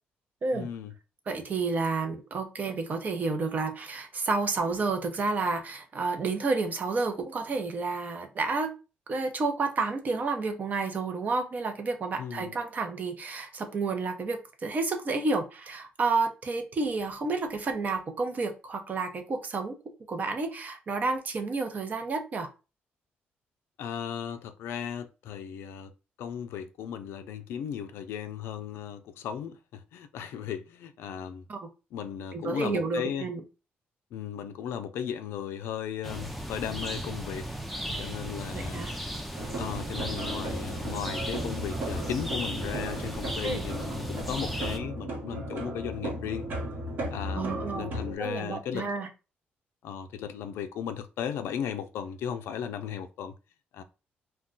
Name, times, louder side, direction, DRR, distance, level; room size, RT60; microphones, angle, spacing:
voice 1, 0.5-0.9 12.2-12.5 23.8-25.9 26.2-31.5 31.9-33.3 34.1-37.5 38.0-38.9 39.6-46.4 47.1-48.9 49.8-53.3 53.7-53.8, left 8 dB, 85° left, 0.3 m, -36 dB
voice 2, 1.3-8.7 9.1-19.8 20.1-22.5 31.5-31.6 32.3-33.4 38.5-38.9 43.4-43.6 47.3-47.9 48.2-49.1, right 3 dB, 45° right, 0.6 m, -30 dB
sound 1, 36.0-44.8, equal, ahead, 0.4 m, -36 dB
sound 2, 39.3-48.2, right 1 dB, 60° right, 1.1 m, -36 dB
2.2 x 2.2 x 3.7 m
cardioid pair, 100°, 4 cm